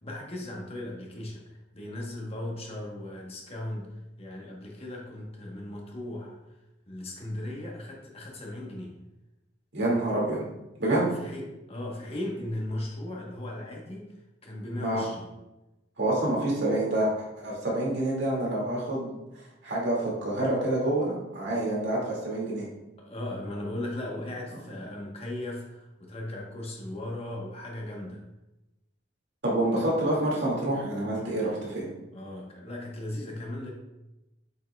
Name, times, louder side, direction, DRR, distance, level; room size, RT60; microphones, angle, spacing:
voice 1, 0.0-3.9 4.2-6.4 6.9-8.9 10.9-14.1 14.4-15.3 23.0-28.2 32.1-33.7, left 1 dB, 35° left, -1 dB, 1.2 m, -37 dB
voice 2, 9.7-10.4 10.8-11.1 14.8-15.0 16.0-17.1 17.4-19.2 19.6-22.6 29.4-31.9, right 1 dB, 65° right, -4 dB, 2.3 m, -27 dB
7.8 x 5.6 x 2.3 m, 0.97 s
head